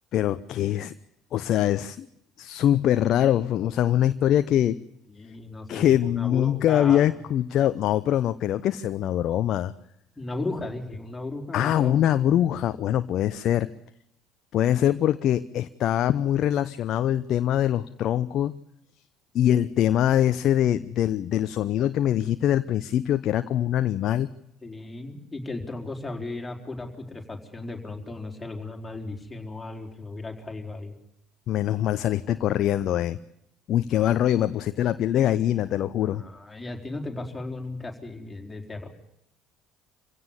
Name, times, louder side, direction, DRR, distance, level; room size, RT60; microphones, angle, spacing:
voice 1, 0.1-0.9 1.3-2.1 2.4-4.8 5.7-9.7 11.5-13.7 14.5-18.6 19.3-24.3 31.5-33.2 33.7-36.2, left 11 dB, 55° left, 12 dB, 0.8 m, -23 dB
voice 2, 5.1-7.1 10.2-12.0 24.6-31.0 36.0-38.9, left 2 dB, 15° left, 2 dB, 4.6 m, -36 dB
26.5 x 16.5 x 7.0 m, 0.77 s
hypercardioid pair, 60°, 0 cm